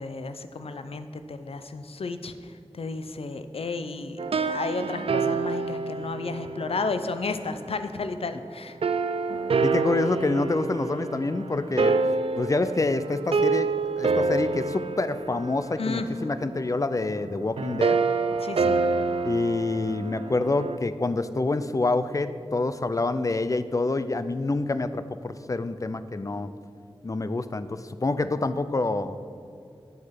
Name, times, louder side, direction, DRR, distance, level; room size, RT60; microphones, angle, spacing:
voice 1, 0.0-8.8 15.8-16.1 18.4-18.8, left 3 dB, 80° left, 9 dB, 0.6 m, -33 dB
sound 1, 4.2-7.5 8.8-20.8, right 4 dB, 75° right, 0.4 m, -27 dB
voice 2, 9.6-11.9 12.4-13.7 14.0-18.0 19.2-26.5 27.0-29.2, left 2 dB, 35° left, 12 dB, 0.5 m, -27 dB
9.6 x 6.3 x 5.8 m, 2.5 s
wide cardioid pair, 55°, 10 cm